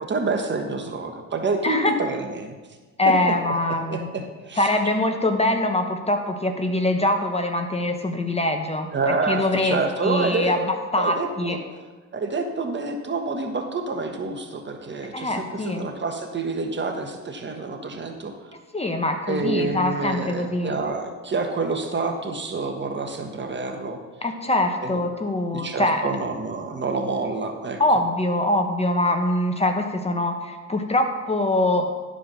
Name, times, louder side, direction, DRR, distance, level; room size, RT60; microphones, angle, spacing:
voice 1, 0.1-2.5 3.9-4.7 8.9-10.6 10.9-11.6 12.1-18.3 19.3-24.0 24.8-25.0 25.5-27.8, right 3 dB, 35° right, 4 dB, 1.3 m, -28 dB
voice 2, 3.0-4.1 4.6-11.6 15.1-15.9 18.7-20.8 24.2-26.0 27.8-31.9, left 1 dB, 20° left, 5 dB, 1.0 m, -23 dB
11.5 x 5.0 x 6.1 m, 1.3 s
cardioid pair, 90°, 30 cm